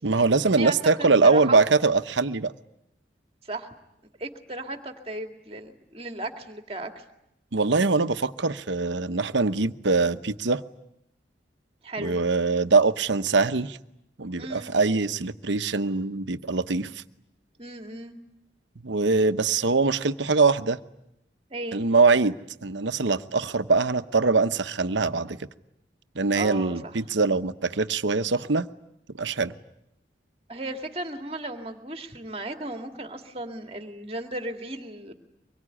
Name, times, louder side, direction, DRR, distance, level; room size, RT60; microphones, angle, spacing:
voice 1, 0.0-2.5 7.5-10.6 12.0-13.8 14.2-17.0 18.8-20.8 21.7-22.3 22.6-25.4 26.1-28.7 29.2-29.5, right 4 dB, 80° right, 11 dB, 1.0 m, -23 dB
voice 2, 0.6-1.6 3.4-3.7 4.2-7.0 11.8-12.1 14.4-14.7 17.6-18.2 21.5-21.8 26.3-26.9 30.5-35.1, right 2 dB, 30° right, 5 dB, 2.2 m, -35 dB
24.5 x 22.5 x 10.0 m, 0.81 s
head